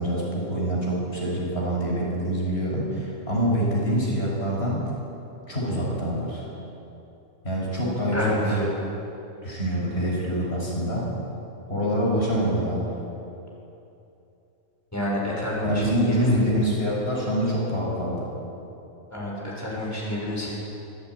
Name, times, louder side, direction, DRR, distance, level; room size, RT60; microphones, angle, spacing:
voice 1, 0.0-4.8 5.5-6.5 7.4-8.2 8.4-8.7 9.4-11.1 11.7-12.9 15.6-18.3, equal, 45° left, -4 dB, 7.3 m, -25 dB
voice 2, 8.1-8.6 14.9-16.4 19.1-20.6, left 1 dB, 10° left, -4 dB, 7.1 m, -28 dB
26.0 x 20.0 x 9.9 m, 2.9 s
omnidirectional pair, 1.5 m